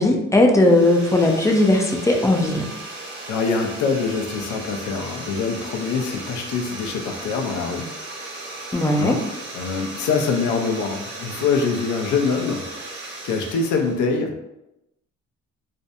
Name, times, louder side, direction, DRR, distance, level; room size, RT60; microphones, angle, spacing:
voice 1, 0.0-2.7 8.7-9.2, left 1 dB, 10° left, 1 dB, 0.4 m, -17 dB
sound 1, 0.6-14.0, right 2 dB, 35° right, 0.8 m, -36 dB
voice 2, 3.0-7.9 9.0-9.2 9.5-12.6 13.2-14.3, left 5 dB, 75° left, 3 dB, 0.5 m, -24 dB
2.5 x 2.1 x 2.6 m, 0.91 s
cardioid pair, 90°, 30 cm